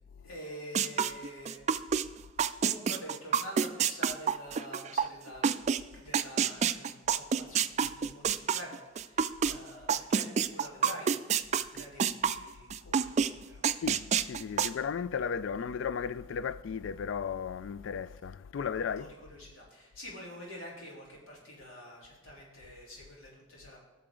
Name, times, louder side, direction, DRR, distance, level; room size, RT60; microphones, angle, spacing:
voice 1, 0.2-1.6 2.6-5.4 5.9-11.2 11.7-13.6 19.0-23.8, equal, 90° left, 3.5 m, -47 dB
sound 1, 0.8-2.0 2.4-5.8 6.1-9.5 9.9-12.4 12.7-13.3 13.6-14.7, right 7 dB, 35° right, 0.3 m, -27 dB
voice 2, 13.8-19.1, left 6 dB, 70° left, 0.3 m, -35 dB
17.0 x 6.9 x 3.8 m
head